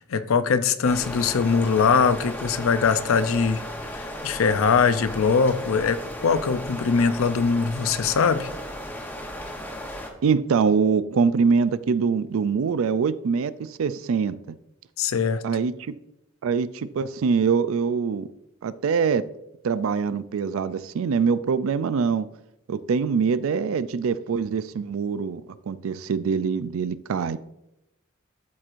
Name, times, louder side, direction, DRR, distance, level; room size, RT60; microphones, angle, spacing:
voice 1, 0.0-3.6 3.9-8.5 15.0-15.4, left 5 dB, 80° left, 0.5 m, -22 dB
sound 1, 0.8-10.1, equal, 10° left, 0.8 m, -35 dB
voice 2, 10.2-14.6 15.4-15.9 16.4-18.3 18.6-19.2 19.6-22.3 22.7-25.4 25.7-27.4, right 5 dB, 80° right, 0.4 m, -24 dB
12.5 x 4.5 x 2.5 m
head